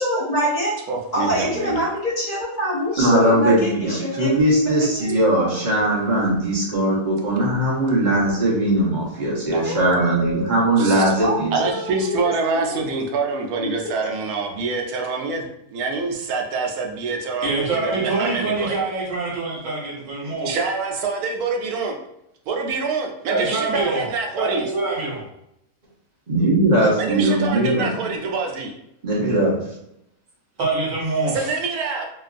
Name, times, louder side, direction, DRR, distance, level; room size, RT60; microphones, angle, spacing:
voice 1, 0.0-0.7 1.1-4.3 4.9-5.9 9.6-13.1 13.6-13.7, equal, 35° left, -5 dB, 0.7 m, -26 dB
voice 2, 0.9-1.8 9.5-9.6 10.8-11.1 11.5-18.8 20.4-22.0 22.5-24.7 27.0-28.7 31.3-32.1, right 4 dB, 80° right, 2 dB, 1.1 m, -26 dB
voice 3, 3.0-11.6 26.3-27.9 29.0-29.6, right 1 dB, 35° right, -5 dB, 0.9 m, -19 dB
voice 4, 17.4-20.6 23.3-24.1 24.4-25.2 30.6-31.5, right 3 dB, 65° right, -4 dB, 1.2 m, -24 dB
3.0 x 2.5 x 2.4 m, 0.79 s
omnidirectional pair, 1.6 m